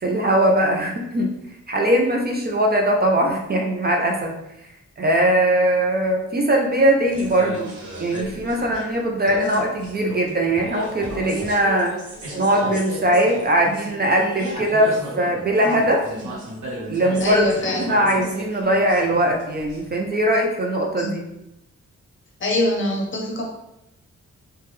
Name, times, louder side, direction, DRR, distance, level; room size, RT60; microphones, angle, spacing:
voice 1, 0.0-1.3 1.7-4.3 5.0-7.7 8.0-11.9 12.4-16.0 16.9-17.4 17.8-21.2, right 1 dB, 35° right, 1 dB, 0.4 m, -20 dB
sound 1, 7.1-20.1, right 1 dB, 85° right, 0.9 m, -34 dB
voice 2, 17.2-17.8 21.0-21.1 22.4-23.4, left 1 dB, 45° left, -1 dB, 0.6 m, -24 dB
3.3 x 2.1 x 3.1 m, 0.87 s
wide cardioid pair, 165°, 29 cm